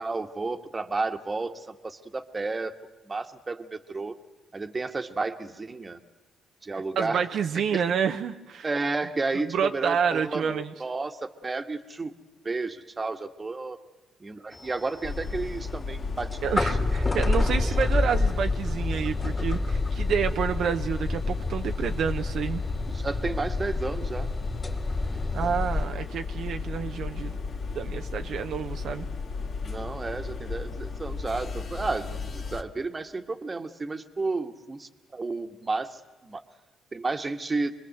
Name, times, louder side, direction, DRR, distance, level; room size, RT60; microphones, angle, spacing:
voice 1, 0.0-2.8 3.0-4.1 4.5-6.0 6.6-7.3 7.7-7.9 8.6-12.1 12.4-13.8 14.2-16.9 22.9-24.3 29.6-36.4 36.9-37.7, right 3 dB, 25° right, 8 dB, 1.7 m, -32 dB
voice 2, 6.7-8.7 9.5-10.7 16.4-22.6 25.3-27.3 27.7-29.1, right 7 dB, 65° right, 6 dB, 1.0 m, -29 dB
sound 1, 14.5-25.9, left 2 dB, 25° left, 2.8 m, -29 dB
sound 2, 15.0-32.6, left 4 dB, 55° left, 2.6 m, -34 dB
26.5 x 21.0 x 8.0 m, 1.2 s
cardioid pair, 90°, 0 cm